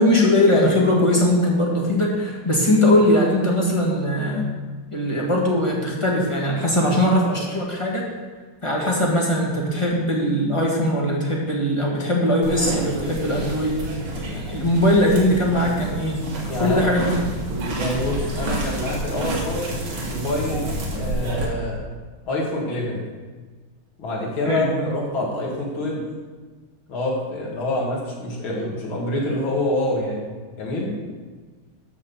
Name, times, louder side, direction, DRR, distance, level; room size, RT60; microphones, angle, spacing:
voice 1, 0.0-4.5 4.9-8.0 8.6-13.8 14.1-16.2 16.6-17.1 24.4-24.7, left 1 dB, 15° left, -2 dB, 1.4 m, -20 dB
sound 1, 12.4-21.5, right 1 dB, 80° right, 2.5 m, -29 dB
voice 2, 16.5-16.9 17.8-19.7 20.1-21.9 22.3-23.0 24.0-26.0 26.9-30.9, left 1 dB, 70° left, -4 dB, 3.0 m, -26 dB
12.0 x 4.2 x 7.0 m, 1.4 s
omnidirectional pair, 2.3 m